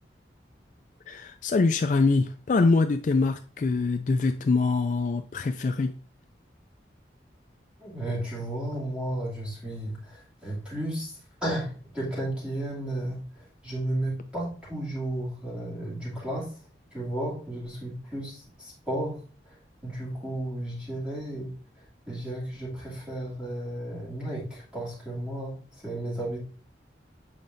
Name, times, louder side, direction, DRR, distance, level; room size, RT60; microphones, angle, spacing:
voice 1, 1.1-5.9, left 3 dB, 45° left, 8 dB, 0.3 m, -24 dB
voice 2, 7.8-16.5 16.9-19.2 19.5-19.6 19.8-21.5 22.1-26.4, right 1 dB, 5° right, -7 dB, 2.6 m, -33 dB
7.3 x 5.0 x 2.6 m, 0.39 s
head